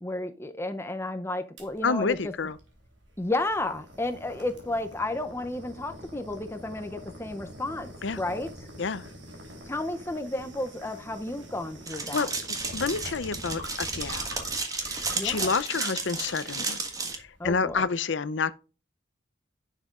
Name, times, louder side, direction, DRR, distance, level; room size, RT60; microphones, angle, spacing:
voice 1, 0.0-2.2 3.2-8.5 9.7-12.3 15.2-15.5 17.4-17.8, left 2 dB, 10° left, 0.6 m, -32 dB
sound 1, 1.6-17.8, equal, 65° right, 3.2 m, -45 dB
voice 2, 1.8-2.6 8.0-8.2 8.8-9.1 12.1-14.3 14.8-16.8 17.2-18.6, left 5 dB, 65° left, 0.6 m, -29 dB
sound 2, 11.9-17.2, right 4 dB, 20° right, 1.4 m, -33 dB
10.5 x 7.3 x 2.5 m
head